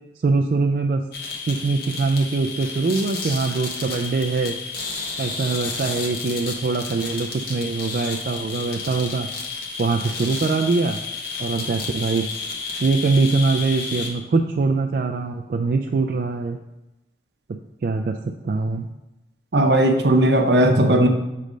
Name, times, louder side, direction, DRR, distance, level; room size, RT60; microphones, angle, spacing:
voice 1, 0.2-1.0 1.4-4.5 5.2-9.3 9.8-11.0 11.4-12.3 12.8-16.6 17.8-18.9 20.6-21.1, right 3 dB, 55° right, 3 dB, 0.3 m, -23 dB
sound 1, 1.1-14.1, left 4 dB, 55° left, 1.0 m, -31 dB
voice 2, 19.5-21.1, right 1 dB, 70° right, 4 dB, 0.7 m, -17 dB
6.3 x 3.2 x 5.1 m, 0.97 s
head